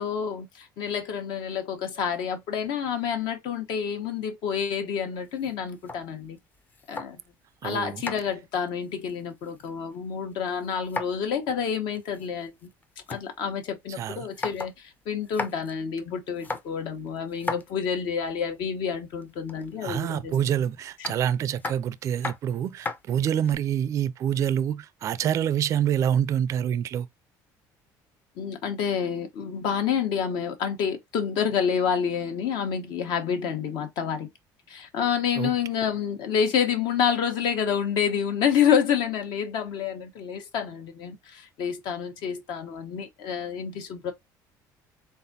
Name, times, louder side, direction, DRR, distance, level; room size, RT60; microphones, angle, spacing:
voice 1, 0.0-6.4 6.9-7.2 7.6-12.5 13.1-14.7 15.0-20.4 28.4-34.3 34.7-44.1, left 7 dB, 70° left, 1.2 m, -28 dB
sound 1, 5.2-7.4 7.7-10.0 10.2-11.3 11.6-11.7 12.0-13.3 13.7-13.8 14.1-14.8 15.1-15.7 16.3-18.3 19.2-19.8 21.0-23.6, left 3 dB, 20° left, 0.6 m, -37 dB
voice 2, 7.6-8.0 13.9-14.3 19.8-27.1 35.4-35.5, right 9 dB, 40° right, 0.4 m, -26 dB
4.0 x 3.6 x 2.7 m
cardioid pair, 145°, 8 cm